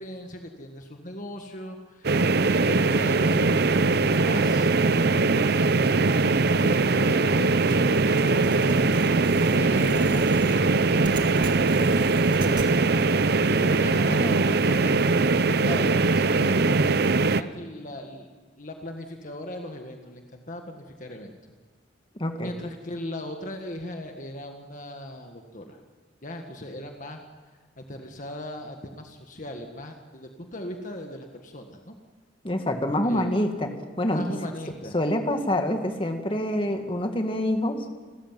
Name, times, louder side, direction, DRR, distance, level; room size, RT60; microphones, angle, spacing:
voice 1, 0.0-6.3 6.6-17.0 17.3-18.3 18.6-21.3 22.3-25.8 26.2-27.2 27.8-31.9 33.0-33.3 34.1-35.0, left 1 dB, 45° left, 4 dB, 1.7 m, -38 dB
sound 1, 2.0-17.4, right 3 dB, 55° right, 0.7 m, -21 dB
sound 2, 7.7-12.7, right 2 dB, 25° right, 2.1 m, -40 dB
voice 2, 22.2-22.5 32.4-33.7 34.0-34.2 34.9-37.8, left 1 dB, 30° left, 5 dB, 2.0 m, -26 dB
29.5 x 14.0 x 9.1 m, 1.4 s
head